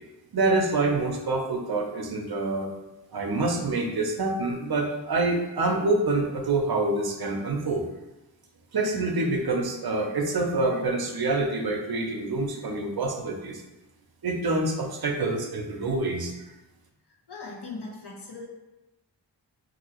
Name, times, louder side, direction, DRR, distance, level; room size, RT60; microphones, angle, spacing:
voice 1, 0.3-2.7 3.1-7.9 8.7-13.6 14.2-16.3, right 2 dB, 55° right, 3 dB, 0.6 m, -26 dB
voice 2, 17.0-18.5, left 3 dB, 60° left, -2 dB, 0.9 m, -40 dB
3.9 x 2.6 x 2.9 m, 1.0 s
cardioid pair, 45°, 45 cm